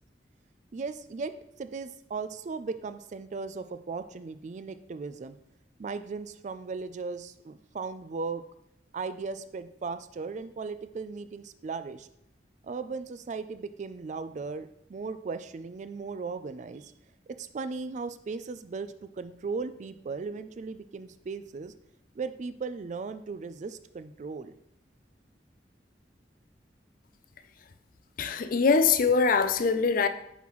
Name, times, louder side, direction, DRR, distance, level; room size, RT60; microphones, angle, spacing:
voice 1, 0.7-1.3 1.6-5.4 5.8-8.4 8.9-12.1 12.6-16.9 17.3-21.7 22.1-24.5, right 4 dB, 40° right, 0.4 m, -37 dB
voice 2, 28.2-30.1, left 5 dB, 50° left, 0.4 m, -23 dB
5.9 x 5.5 x 3.1 m
head